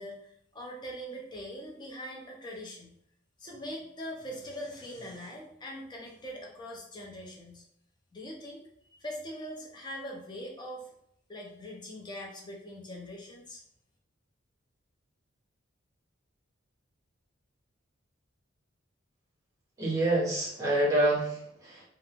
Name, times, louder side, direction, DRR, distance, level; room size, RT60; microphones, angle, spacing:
voice 1, 0.0-2.9 3.4-7.6 8.1-8.6 8.9-10.9 11.3-13.6, equal, 20° left, -2 dB, 0.5 m, -42 dB
voice 2, 19.8-21.8, right 1 dB, 15° right, -5 dB, 0.7 m, -27 dB
2.3 x 2.1 x 3.1 m, 0.72 s
head